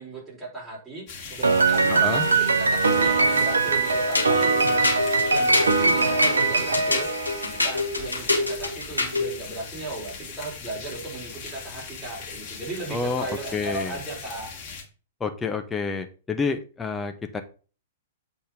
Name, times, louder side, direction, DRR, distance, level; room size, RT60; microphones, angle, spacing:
voice 1, 0.0-7.1 7.5-14.5, right 2 dB, 15° right, -4 dB, 4.5 m, -36 dB
sound 1, 1.1-14.8, left 5 dB, 35° left, 2.3 m, -40 dB
Piano, 1.4-7.9, right 3 dB, 70° right, 0.8 m, -22 dB
voice 2, 1.9-2.3 12.9-13.3 13.5-14.0 15.2-17.4, left 4 dB, 15° left, 7 dB, 1.0 m, -28 dB
sound 2, 4.1-9.3, left 2 dB, 85° left, 2.3 m, -26 dB
8.0 x 4.4 x 5.1 m, 0.37 s
figure-of-eight pair, 105°, 0 cm